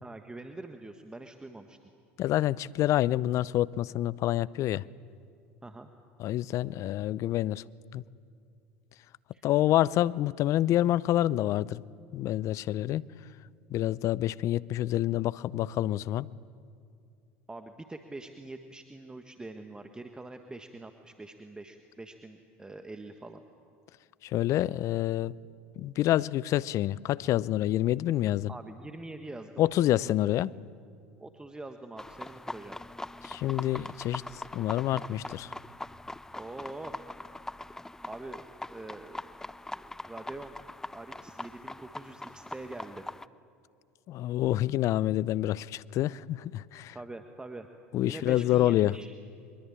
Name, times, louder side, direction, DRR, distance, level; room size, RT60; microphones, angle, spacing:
voice 1, 0.0-1.8 5.6-5.9 9.3-9.4 17.5-23.4 28.5-29.6 31.2-32.8 36.3-36.9 38.1-38.4 38.7-39.2 39.7-40.6 40.9-43.0 46.9-47.7 48.0-49.1, right 2 dB, 10° right, 1.5 m, -44 dB
voice 2, 2.2-4.8 6.2-7.6 7.9-8.0 9.4-11.8 12.1-13.0 13.7-16.3 24.2-25.3 25.8-28.5 29.6-30.5 33.2-34.2 34.5-35.5 44.1-47.0 47.9-49.0, left 14 dB, 50° left, 0.6 m, -27 dB
sound 1, 32.0-43.3, left 2 dB, 10° left, 0.6 m, -42 dB
23.5 x 21.5 x 8.8 m
hypercardioid pair, 75°, 7 cm